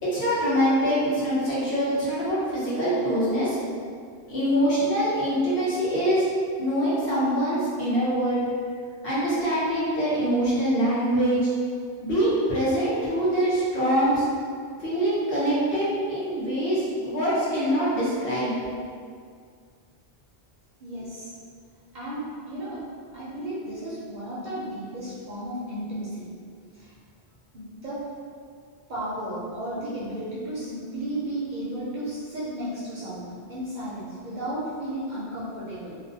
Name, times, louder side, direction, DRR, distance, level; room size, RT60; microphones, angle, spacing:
voice 1, 0.0-3.6 4.3-6.3 6.6-8.4 9.0-11.4 12.0-14.3 14.8-18.5, equal, 65° left, -10 dB, 1.0 m, -24 dB
voice 2, 20.8-21.3 21.9-22.8 23.1-26.3 26.7-26.9 27.5-28.0 28.9-36.0, right 1 dB, 55° right, -9 dB, 0.6 m, -34 dB
2.5 x 2.1 x 2.6 m, 2.1 s
omnidirectional pair, 1.1 m